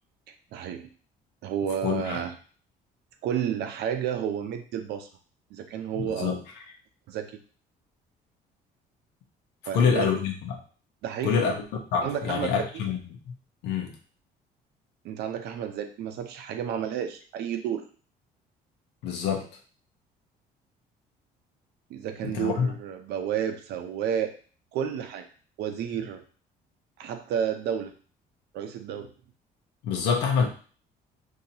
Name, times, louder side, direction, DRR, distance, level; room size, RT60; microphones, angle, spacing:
voice 1, 0.5-0.9 1.4-2.3 3.2-5.1 5.5-6.4 7.1-7.4 9.6-10.1 11.0-11.5 12.0-12.5 15.0-17.9 21.9-24.3 24.7-25.3 25.6-26.2 27.0-27.9 28.5-29.1, right 8 dB, 75° right, 7 dB, 0.6 m, -31 dB
voice 2, 1.8-2.2 5.9-6.4 9.7-10.6 11.2-11.6 11.9-13.3 13.6-13.9 19.0-19.5 22.2-22.7 29.8-30.5, left 6 dB, 85° left, 1 dB, 0.9 m, -26 dB
4.0 x 2.8 x 2.8 m, 0.41 s
cardioid pair, 110°, 17 cm